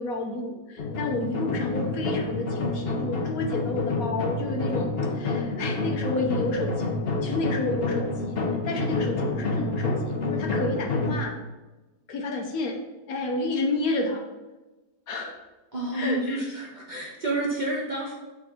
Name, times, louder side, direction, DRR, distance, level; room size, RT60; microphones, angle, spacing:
voice 1, 0.0-6.9 7.2-8.1 8.7-9.9 10.3-11.4 12.1-12.8 13.1-14.2 15.1-15.3 15.9-16.4, left 3 dB, 65° left, 2 dB, 1.1 m, -30 dB
sound 1, 0.8-11.2, left 2 dB, 45° left, 0.8 m, -28 dB
voice 2, 15.7-18.1, right 2 dB, 35° right, -3 dB, 0.9 m, -29 dB
6.4 x 3.7 x 4.8 m, 1.1 s
omnidirectional pair, 1.8 m